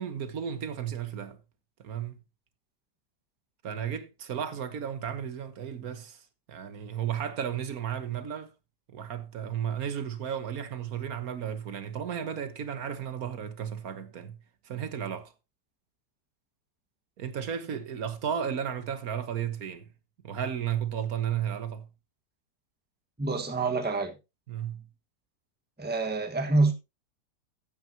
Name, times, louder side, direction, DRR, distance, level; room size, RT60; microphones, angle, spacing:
voice 1, 0.0-1.4 1.8-2.2 3.6-8.5 8.9-14.4 14.7-15.3 17.2-19.9 20.2-21.9 24.5-24.9, right 8 dB, 55° right, 1.7 m, -34 dB
voice 2, 23.2-24.1 25.8-26.7, right 3 dB, 5° right, 1.3 m, -26 dB
14.5 x 9.3 x 2.8 m
omnidirectional pair, 1.9 m